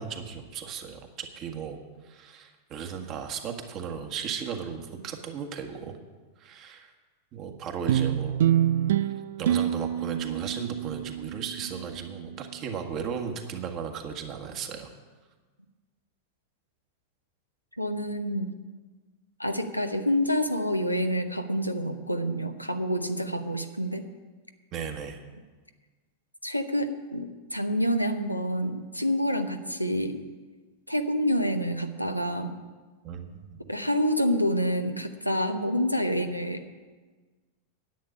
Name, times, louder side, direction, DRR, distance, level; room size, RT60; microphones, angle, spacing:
voice 1, 0.0-1.8 2.0-6.0 6.4-6.9 7.3-8.4 9.0-14.9 24.7-25.2 33.0-33.6, right 7 dB, 35° right, 4 dB, 1.6 m, -36 dB
sound 1, 7.9-12.5, right 11 dB, 60° right, 0.4 m, -27 dB
voice 2, 17.8-18.5 19.4-24.0 26.4-30.2 30.9-32.6 33.7-36.6, equal, 90° left, 6 dB, 0.9 m, -27 dB
10.5 x 8.8 x 8.6 m, 1.4 s
figure-of-eight pair, 90°, 0 cm